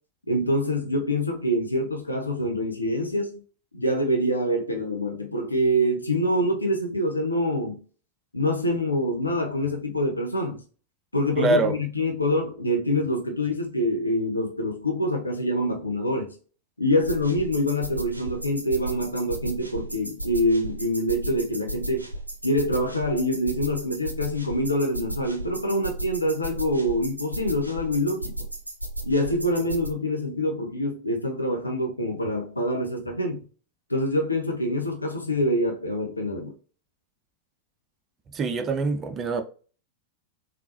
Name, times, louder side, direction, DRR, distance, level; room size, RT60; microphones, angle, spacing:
voice 1, 0.3-3.4 3.7-7.8 8.3-10.6 11.1-16.3 16.8-22.1 22.4-28.3 29.0-33.4 33.9-36.5, equal, 85° left, 0.7 m, -25 dB
voice 2, 11.4-11.8 38.3-39.4, right 3 dB, 25° right, 0.5 m, -24 dB
sound 1, 17.0-29.9, right 1 dB, 85° right, 0.5 m, -35 dB
3.7 x 2.3 x 2.8 m
figure-of-eight pair, 90°, 0 cm